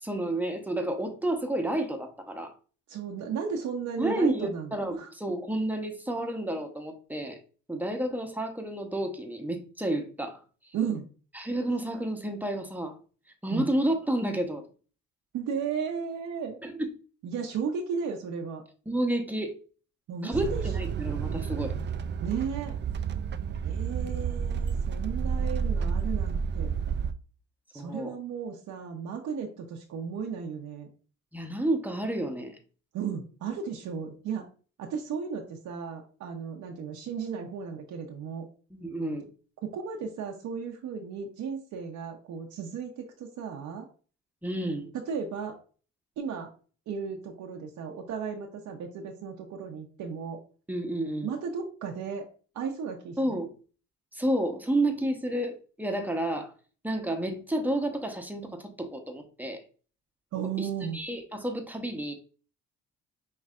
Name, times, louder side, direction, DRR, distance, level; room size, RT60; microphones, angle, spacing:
voice 1, 0.0-2.5 4.0-7.4 7.7-10.4 11.3-13.0 13.4-14.6 16.6-16.9 18.9-19.5 20.2-21.7 27.7-28.1 31.3-32.6 38.7-39.3 44.4-44.9 50.7-51.3 53.2-53.5 54.1-56.5 56.8-59.6 60.6-60.7 60.9-62.1, right 1 dB, 5° right, 0.9 m, -30 dB
voice 2, 2.9-5.1 10.7-11.1 13.5-13.7 15.3-16.6 17.2-18.6 20.1-20.6 22.2-22.7 23.6-26.7 27.7-30.9 32.9-34.5 34.8-38.4 39.6-43.9 44.9-45.6 46.2-46.5 46.9-50.4 51.2-52.3 52.5-53.4 60.3-61.0, right 6 dB, 75° right, 0.8 m, -35 dB
sound 1, 20.3-27.1, right 6 dB, 40° right, 0.4 m, -30 dB
5.5 x 3.2 x 2.4 m
cardioid pair, 90°, 30 cm